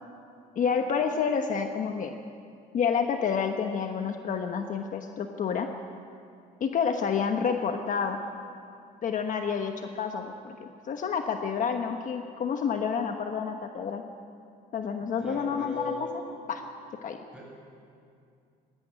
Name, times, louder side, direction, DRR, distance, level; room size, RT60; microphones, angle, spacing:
voice 1, 0.6-2.1 2.7-5.7 6.6-8.2 9.0-14.0 14.7-16.2 16.5-16.6 17.0-17.2, left 6 dB, 50° left, 5 dB, 1.2 m, -29 dB
voice 2, 15.0-16.1 17.3-17.5, left 2 dB, 5° right, -3 dB, 7.8 m, -38 dB
17.5 x 16.5 x 9.8 m, 2.4 s
cardioid pair, 110°, 17 cm